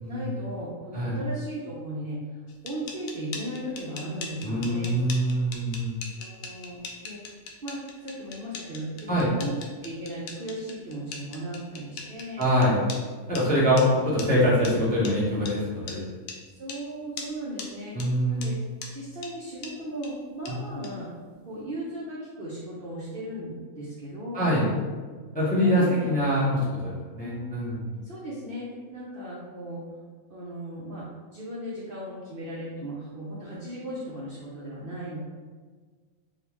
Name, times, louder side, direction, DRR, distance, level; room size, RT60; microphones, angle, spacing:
voice 1, 0.1-2.4 2.6-4.9 6.1-7.2 7.6-9.6 9.8-12.5 16.4-18.6 18.9-21.1 21.4-24.5 25.6-26.2 27.2-27.5 28.0-29.8 30.3-35.2, right 1 dB, 55° right, -7 dB, 0.7 m, -37 dB
sound 1, 2.5-13.0 13.3-13.4 13.8-13.9 14.2-14.3 14.6-14.7 15.0-15.1 15.5-15.6 15.9-16.0 16.3-16.4 16.7-16.8 17.2-17.3 17.6-17.7 18.0-18.1 18.4-18.5 18.8-18.9 19.2-19.3 19.6-19.7 20.0-20.1 20.4-20.5 20.8-20.9, left 5 dB, 80° left, 1.0 m, -39 dB
voice 2, 4.4-5.9 9.1-9.3 12.4-12.8 13.3-15.6 15.9-16.1 18.0-18.5 24.3-24.7 25.3-27.8, equal, 10° left, -8 dB, 0.6 m, -24 dB
3.5 x 2.4 x 3.0 m, 1.5 s
omnidirectional pair, 1.4 m